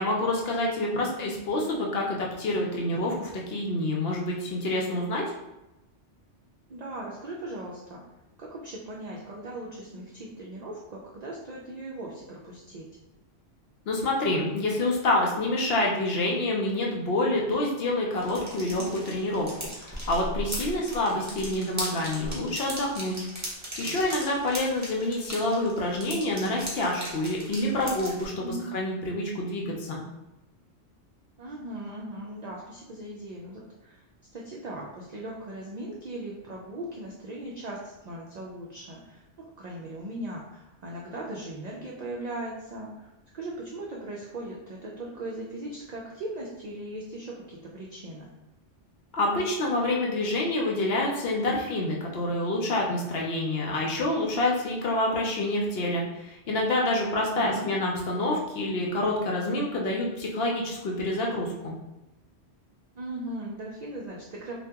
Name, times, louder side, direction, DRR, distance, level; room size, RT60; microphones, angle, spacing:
voice 1, 0.0-5.2 13.9-23.3 23.8-30.0 49.1-61.7, left 1 dB, 65° left, -1 dB, 0.7 m, -27 dB
voice 2, 6.7-8.0 8.4-12.9 20.7-21.0 25.2-25.5 28.4-28.7 31.4-34.0 34.3-48.3 57.3-57.7 62.9-64.6, right 1 dB, 65° right, -3 dB, 0.4 m, -39 dB
sound 1, 18.1-28.2, equal, 20° right, 0.6 m, -37 dB
2.7 x 2.2 x 3.4 m, 0.98 s
omnidirectional pair, 1.2 m